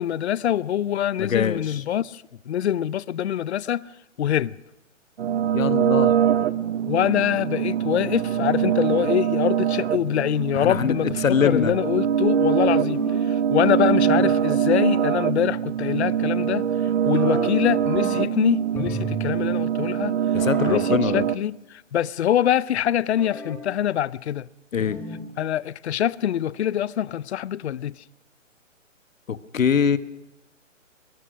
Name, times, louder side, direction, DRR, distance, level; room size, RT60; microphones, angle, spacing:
voice 1, 0.0-3.8 4.2-4.5 6.8-11.2 11.4-16.7 17.0-20.1 20.6-20.8 21.1-24.5 25.4-27.9, left 10 dB, 55° left, 0.6 m, -24 dB
voice 2, 1.2-1.8 5.5-6.2 10.5-11.7 20.3-21.2 24.7-25.0 29.3-30.0, left 7 dB, 80° left, 1.2 m, -23 dB
sound 1, 5.2-21.3, right 9 dB, 55° right, 1.0 m, -23 dB
sound 2, 12.8-13.3 14.0-14.5 17.2-18.4 18.8-19.4 20.4-20.9 23.2-23.7 24.8-25.3, equal, 5° left, 2.5 m, -34 dB
21.0 x 20.5 x 6.3 m
hypercardioid pair, 155°, 39 cm